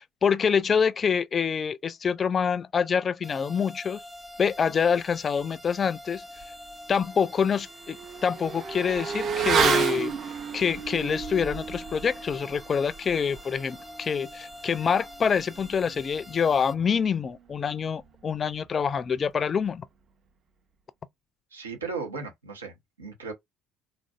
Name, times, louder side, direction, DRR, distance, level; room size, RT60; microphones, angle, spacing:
voice 1, 0.0-4.0 4.4-6.2 6.9-8.0 8.2-10.1 10.5-19.8, left 6 dB, 35° left, 0.3 m, -26 dB
sound 1, 3.2-16.7, left 1 dB, 10° right, 0.7 m, -46 dB
Motorcycle / Accelerating revving vroom, 6.4-6.5 6.9-16.9 17.2-17.3, right 6 dB, 45° right, 0.7 m, -32 dB
voice 2, 21.5-23.3, right 4 dB, 80° right, 1.0 m, -36 dB
3.7 x 2.5 x 2.3 m
figure-of-eight pair, 60°, 0 cm